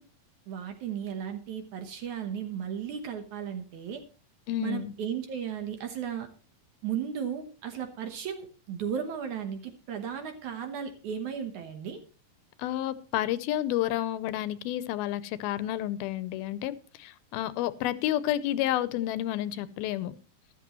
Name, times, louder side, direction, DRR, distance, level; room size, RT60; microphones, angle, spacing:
voice 1, 0.5-4.0 4.6-6.3 6.8-12.0, right 8 dB, 65° right, 7 dB, 2.2 m, -35 dB
voice 2, 4.5-4.9 12.6-20.2, left 13 dB, 85° left, 15 dB, 2.6 m, -30 dB
13.5 x 13.0 x 3.0 m, 0.35 s
omnidirectional pair, 4.3 m